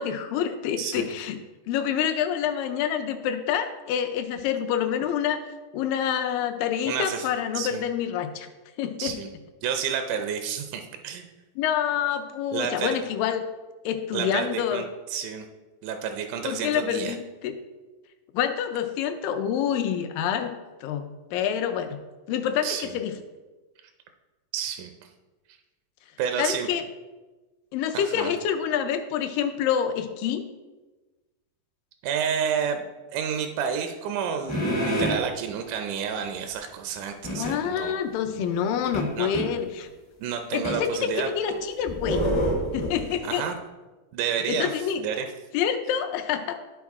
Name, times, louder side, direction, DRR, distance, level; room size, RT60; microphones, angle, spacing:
voice 1, 0.0-1.4 1.7-5.5 5.7-8.5 8.8-9.2 11.6-13.5 13.9-14.8 16.4-17.6 18.3-20.6 20.8-22.0 22.3-23.2 26.4-26.8 27.7-30.5 37.3-39.9 40.5-42.3 42.7-43.5 44.5-45.0 45.5-46.6, left 9 dB, 80° left, 7 dB, 2.1 m, -27 dB
voice 2, 0.8-1.1 6.9-7.3 7.5-7.8 9.0-9.3 9.6-11.3 12.5-13.0 14.1-14.8 15.1-15.5 15.8-17.2 22.6-22.9 24.5-24.9 26.2-26.7 27.9-28.4 32.0-37.9 38.3-38.5 39.1-39.3 40.2-41.3 43.2-43.6 44.1-44.7 45.0-45.3, right 8 dB, 85° right, 6 dB, 1.7 m, -30 dB
sound 1, 34.5-35.2 37.2-37.5 38.9-39.5 40.6-40.8 41.5-43.1, equal, 60° left, 0.7 m, -27 dB
12.5 x 4.2 x 3.6 m, 1.2 s
omnidirectional pair, 4.2 m